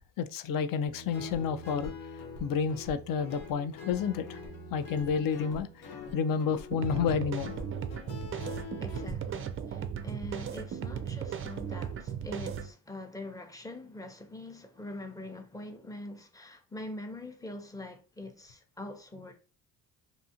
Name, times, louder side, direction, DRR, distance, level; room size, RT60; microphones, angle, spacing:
voice 1, 0.2-1.9 2.4-4.4 4.7-5.7 6.1-7.5, left 6 dB, 55° left, 0.5 m, -30 dB
Guitar, 0.8-9.1, left 3 dB, 90° left, 0.8 m, -44 dB
sound 1, 6.7-12.7, right 8 dB, 35° right, 0.4 m, -36 dB
voice 2, 8.8-19.3, left 1 dB, 10° left, 0.6 m, -43 dB
2.6 x 2.3 x 2.7 m
supercardioid pair, 65°, 42 cm